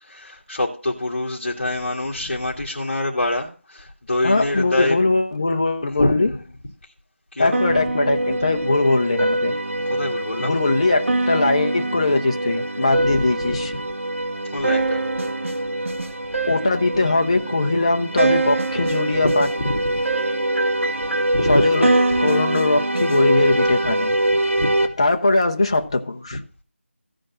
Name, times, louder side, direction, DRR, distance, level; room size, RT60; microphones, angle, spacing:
voice 1, 0.0-5.0 5.9-6.1 7.3-7.7 9.7-10.6 12.9-13.6 14.5-15.1 19.2-19.3 19.6-20.0 21.3-21.6 22.1-22.2 24.6-24.7 26.3-26.4, left 1 dB, 45° left, 2.1 m, -25 dB
voice 2, 4.2-6.3 7.4-9.6 10.4-13.7 16.5-19.5 21.5-24.1 25.0-26.4, left 2 dB, 25° left, 0.8 m, -21 dB
sound 1, 7.5-24.9, right 2 dB, 70° right, 2.2 m, -23 dB
15.0 x 5.1 x 7.5 m
figure-of-eight pair, 175°, 7 cm